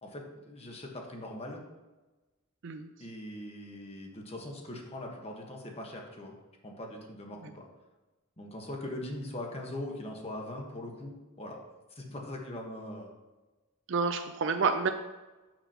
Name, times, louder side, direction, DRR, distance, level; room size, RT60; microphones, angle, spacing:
voice 1, 0.0-1.6 3.0-6.3 6.6-7.7 8.4-11.6 12.0-13.1, left 1 dB, 30° left, 1 dB, 1.3 m, -41 dB
voice 2, 13.9-14.9, right 5 dB, 60° right, 6 dB, 0.5 m, -28 dB
12.0 x 6.1 x 2.9 m, 1.1 s
head